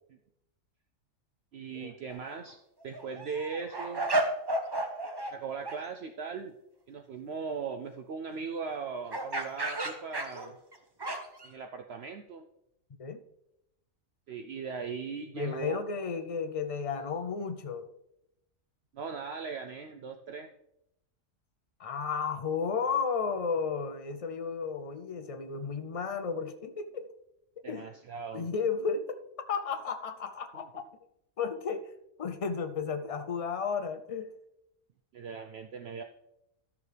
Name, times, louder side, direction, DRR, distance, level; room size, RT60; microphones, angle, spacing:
voice 1, 1.5-2.6 2.8-4.1 5.3-6.5 6.9-10.6 11.4-12.4 14.3-15.8 18.9-20.5 27.6-28.5 30.5-30.6 35.1-36.0, right 5 dB, 65° right, 6 dB, 0.7 m, -39 dB
sound 1, 2.1-2.3 2.8-5.4 5.7-5.8 9.1-11.5, right 1 dB, 25° right, 0.7 m, -33 dB
voice 2, 15.3-17.9 21.8-27.1 27.7-27.8 28.3-30.8 31.4-31.8 32.2-34.3, left 5 dB, 60° left, 9 dB, 0.3 m, -33 dB
12.5 x 6.9 x 3.3 m, 0.83 s
omnidirectional pair, 1.4 m